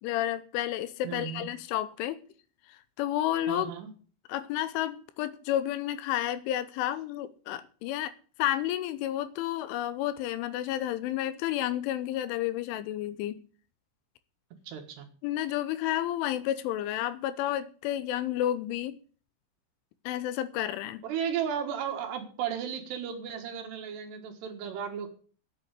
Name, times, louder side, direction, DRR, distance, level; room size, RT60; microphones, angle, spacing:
voice 1, 0.0-2.2 2.7-3.7 4.3-8.1 8.4-13.4 15.2-19.0 20.1-21.0, left 13 dB, 85° left, 3.2 m, -31 dB
voice 2, 1.0-1.5 3.5-3.9 14.6-15.1 21.0-25.1, right 8 dB, 65° right, 3.3 m, -34 dB
8.7 x 8.4 x 8.1 m
omnidirectional pair, 5.5 m